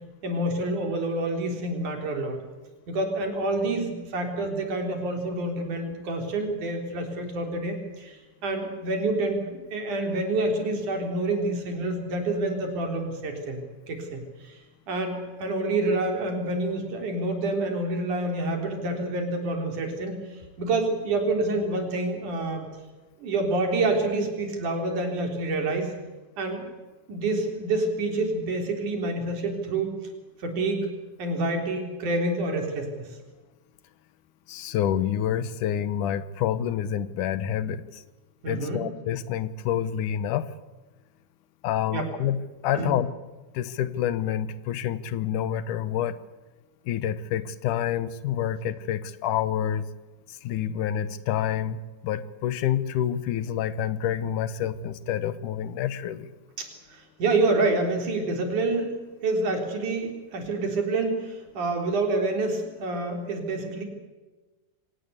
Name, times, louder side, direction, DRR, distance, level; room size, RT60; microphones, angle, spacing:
voice 1, 0.2-2.4 2.9-13.6 13.9-14.6 14.9-20.2 20.6-22.7 23.2-25.9 26.4-26.6 27.1-29.9 30.4-30.9 31.2-33.1 38.4-38.9 41.9-42.1 42.7-43.0 56.6-63.8, right 2 dB, 80° right, 4 dB, 5.1 m, -27 dB
voice 2, 34.5-37.8 38.5-40.5 41.6-42.4 42.6-43.1 43.5-46.2 46.9-49.8 50.3-56.3, left 10 dB, 85° left, 14 dB, 2.6 m, -28 dB
25.5 x 18.0 x 8.3 m, 1.2 s
omnidirectional pair, 3.5 m